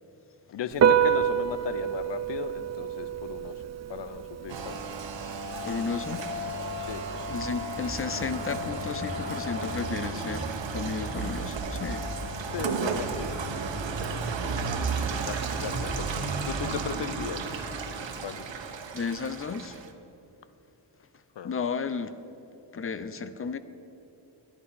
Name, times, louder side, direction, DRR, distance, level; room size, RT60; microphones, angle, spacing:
voice 1, 0.5-3.6 3.9-4.8 6.8-7.3 12.5-13.7 15.2-17.7 18.2-18.4 21.4-21.5, left 8 dB, 70° left, 13 dB, 0.7 m, -37 dB
Piano, 0.7-8.7, right 9 dB, 40° right, 0.4 m, -29 dB
Rain, 4.5-19.9, right 3 dB, 80° right, 1.0 m, -33 dB
voice 2, 5.6-6.3 7.3-10.5 10.7-12.1 18.9-19.8 21.4-22.2 22.7-23.6, left 5 dB, 30° left, 12 dB, 0.5 m, -33 dB
11.0 x 10.5 x 5.6 m, 2.9 s
wide cardioid pair, 145°, 44 cm